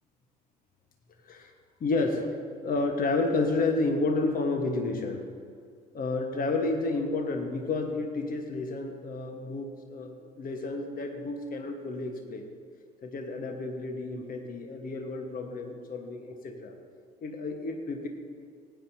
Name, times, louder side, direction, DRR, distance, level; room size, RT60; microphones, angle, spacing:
voice 1, 1.8-2.3 2.6-5.3 5.9-12.5 13.0-16.7 17.2-18.1, left 3 dB, 45° left, 4 dB, 1.4 m, -30 dB
19.0 x 10.0 x 2.8 m, 2.1 s
figure-of-eight pair, 50°, 21 cm